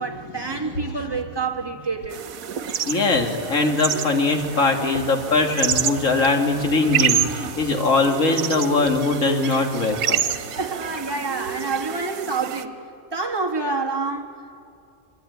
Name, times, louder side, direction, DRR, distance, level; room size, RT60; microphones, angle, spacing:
voice 1, 0.0-2.3 10.5-12.8 13.1-14.6, right 4 dB, 20° right, 1.7 m, -28 dB
sound 1, 2.1-12.6, right 9 dB, 90° right, 1.3 m, -28 dB
voice 2, 2.9-10.2, left 3 dB, 65° left, 2.5 m, -21 dB
24.0 x 23.5 x 9.4 m
omnidirectional pair, 1.4 m